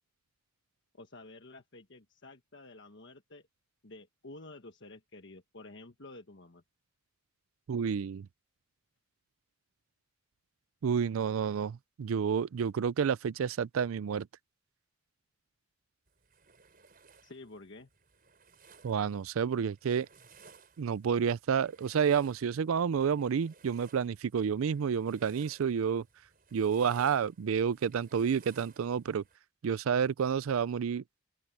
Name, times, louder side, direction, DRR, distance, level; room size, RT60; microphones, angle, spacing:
voice 1, 0.9-3.5 3.8-6.6 17.2-17.9, left 2 dB, 60° left, 1.4 m, -50 dB
voice 2, 7.7-8.3 10.8-14.3 18.8-20.1 20.8-26.0 26.5-29.2 29.6-31.0, right 7 dB, 85° right, 0.4 m, -30 dB
sound 1, 16.1-29.4, right 5 dB, 45° right, 5.3 m, -60 dB
open air
head